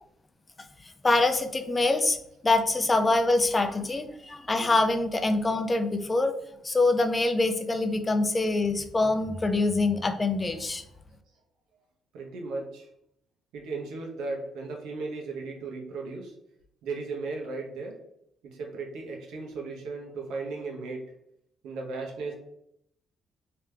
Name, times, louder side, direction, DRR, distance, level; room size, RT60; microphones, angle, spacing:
voice 1, 0.8-2.2 2.4-6.3 6.6-10.8, left 2 dB, 25° left, 7 dB, 0.5 m, -25 dB
voice 2, 12.1-12.9 13.5-16.3 16.8-18.0 18.4-21.1 21.6-22.3, right 3 dB, 90° right, 0 dB, 0.9 m, -36 dB
3.3 x 2.9 x 3.3 m, 0.75 s
cardioid pair, 90°, 0 cm